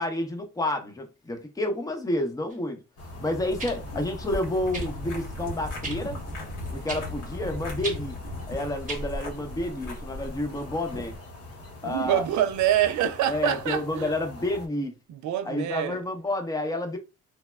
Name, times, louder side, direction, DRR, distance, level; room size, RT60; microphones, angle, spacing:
voice 1, 0.0-2.8 3.2-6.2 6.7-8.2 8.5-11.2 11.8-12.3 13.3-15.0 15.4-17.0, left 1 dB, 10° left, 0.6 m, -30 dB
sound 1, 2.5-2.6 3.6-3.8 4.7-4.9 5.8-6.0 6.9-7.1 7.8-8.0 8.9-9.0 10.0-10.1, right 3 dB, 25° right, 0.9 m, -34 dB
sound 2, 3.0-14.7, left 2 dB, 50° left, 0.9 m, -40 dB
sound 3, 3.5-11.2, left 1 dB, 80° left, 1.1 m, -39 dB
voice 2, 11.8-14.2 15.1-16.0, right 11 dB, 70° right, 0.5 m, -26 dB
3.1 x 2.0 x 2.2 m
cardioid pair, 90°, 30 cm